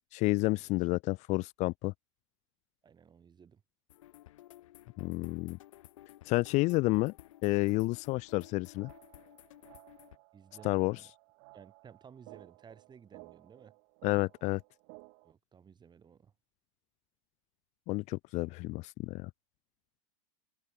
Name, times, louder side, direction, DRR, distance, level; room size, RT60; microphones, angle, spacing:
voice 1, 0.1-1.9 5.0-5.6 6.3-7.1 7.4-8.9 10.6-11.0 14.0-14.6 17.9-19.3, left 22 dB, 45° left, 0.5 m, -30 dB
voice 2, 2.8-3.6 10.3-11.1 11.5-13.7 15.2-16.3, right 7 dB, 25° right, 6.8 m, -56 dB
sound 1, 3.9-10.2, left 14 dB, 70° left, 1.9 m, -55 dB
sound 2, 8.3-15.3, right 40 dB or more, 55° right, 7.1 m, -57 dB
hypercardioid pair, 95°, 17 cm